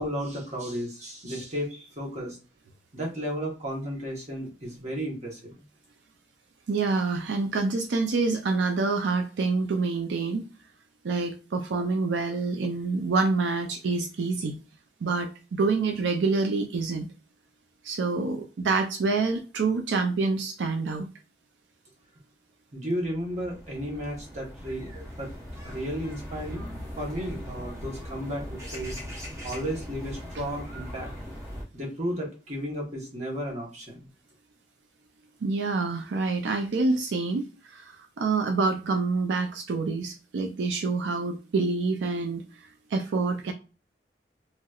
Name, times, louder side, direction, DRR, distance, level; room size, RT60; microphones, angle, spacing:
voice 1, 0.0-2.4 2.9-5.5 22.7-25.3 25.6-29.0 29.4-31.1 31.7-34.0, equal, 40° right, 1.1 m, -33 dB
voice 2, 6.7-10.4 11.0-14.6 15.0-17.1 17.8-21.1 35.4-43.5, right 3 dB, 85° right, 0.4 m, -27 dB
sound 1, 22.9-31.6, equal, 15° right, 0.7 m, -40 dB
3.0 x 2.9 x 2.3 m
head